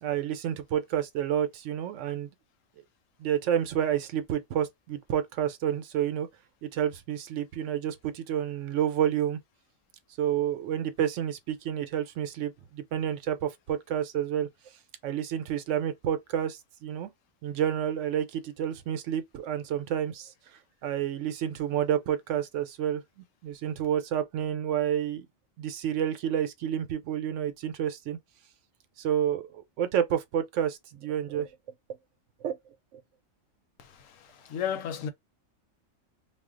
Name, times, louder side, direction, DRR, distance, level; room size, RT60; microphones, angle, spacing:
voice 1, 0.0-2.3 3.2-6.3 6.6-9.4 10.2-14.5 15.0-17.1 17.4-20.3 20.8-23.0 23.4-25.3 25.6-28.2 29.0-31.5 32.4-32.6 32.9-33.0, right 10 dB, 75° right, 0.9 m, -29 dB
voice 2, 33.8-35.1, left 8 dB, 80° left, 1.0 m, -34 dB
2.4 x 2.2 x 3.6 m
omnidirectional pair, 1.3 m